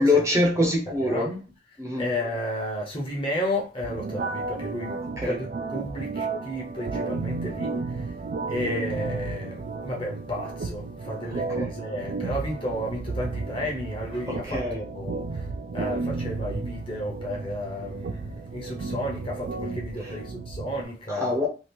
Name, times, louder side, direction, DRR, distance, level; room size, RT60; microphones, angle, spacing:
voice 1, 0.0-1.3 1.8-2.1 5.2-5.4 11.6-11.7 14.3-14.8 20.0-20.2 21.1-21.5, left 2 dB, 15° right, 0.6 m, -24 dB
voice 2, 1.0-1.4 2.0-8.1 8.5-15.4 15.7-21.3, left 1 dB, 30° left, 0.7 m, -32 dB
sound 1, 3.8-20.8, right 3 dB, 55° right, 0.3 m, -33 dB
2.8 x 2.4 x 3.4 m
head